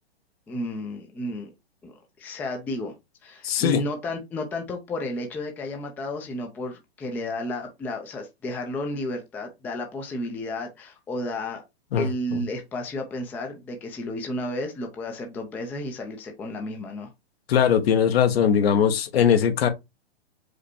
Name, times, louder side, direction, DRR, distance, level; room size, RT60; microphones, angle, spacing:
voice 1, 0.5-1.5 1.8-2.9 3.2-11.6 12.0-17.1, left 1 dB, 5° left, 0.4 m, -32 dB
voice 2, 3.4-3.8 11.9-12.4 17.5-19.7, left 8 dB, 70° left, 1.0 m, -20 dB
5.0 x 2.2 x 4.4 m
hypercardioid pair, 135°, 32 cm